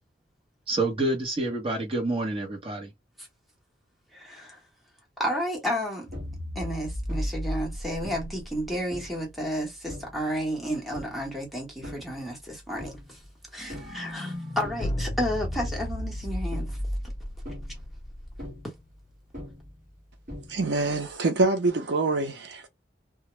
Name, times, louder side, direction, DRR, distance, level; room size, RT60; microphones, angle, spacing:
voice 1, 0.7-2.9, right 2 dB, 30° right, 0.8 m, -28 dB
voice 2, 4.1-4.6 5.2-6.1 6.5-13.2 13.5-16.8 17.7-17.8 18.6-18.7, equal, ahead, 0.9 m, -32 dB
sound 1, 6.1-9.3 9.9-10.4 10.9-11.4 11.8-12.3 12.8-13.3 13.6-18.9 19.3-20.0 20.3-20.9, equal, 45° right, 1.2 m, -36 dB
sound 2, 14.8-18.7, left 1 dB, 25° left, 0.3 m, -36 dB
voice 3, 20.5-22.7, right 3 dB, 70° right, 0.6 m, -25 dB
2.3 x 2.1 x 3.0 m
head